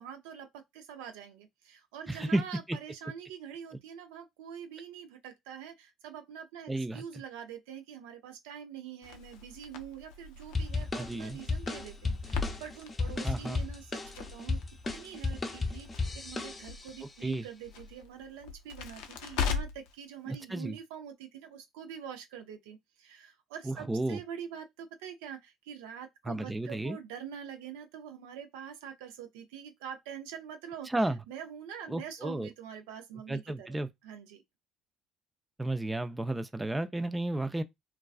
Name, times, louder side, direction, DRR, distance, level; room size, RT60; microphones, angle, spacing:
voice 1, 0.0-14.6 14.9-30.9 31.3-34.4, right 8 dB, 85° right, 0.4 m, -45 dB
voice 2, 2.1-2.4 2.7-2.8 6.7-7.0 10.9-11.4 13.2-13.6 17.2-17.5 20.3-20.8 23.6-24.2 26.3-27.0 30.9-31.2 31.9-32.5 33.3-33.9 35.6-37.6, right 2 dB, 15° right, 0.3 m, -32 dB
Crackle, 9.0-19.9, left 6 dB, 80° left, 0.4 m, -40 dB
sound 1, 10.5-17.0, left 3 dB, 30° left, 0.6 m, -34 dB
2.3 x 2.3 x 2.3 m
hypercardioid pair, 65°, 0 cm